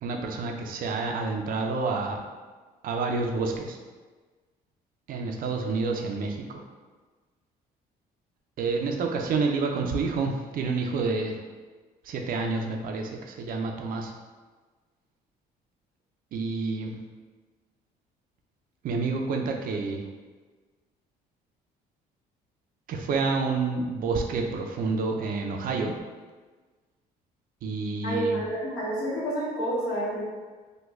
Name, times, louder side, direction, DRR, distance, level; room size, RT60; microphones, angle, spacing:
voice 1, 0.0-2.3 2.8-3.8 5.1-6.6 8.6-11.4 12.1-14.1 16.3-16.9 18.8-20.0 22.9-25.9 27.6-28.4, right 4 dB, 55° right, 2 dB, 0.5 m, -28 dB
voice 2, 28.0-30.2, right 1 dB, 65° left, -7 dB, 1.4 m, -29 dB
3.1 x 2.2 x 3.5 m, 1.4 s
cardioid pair, 110°, 17 cm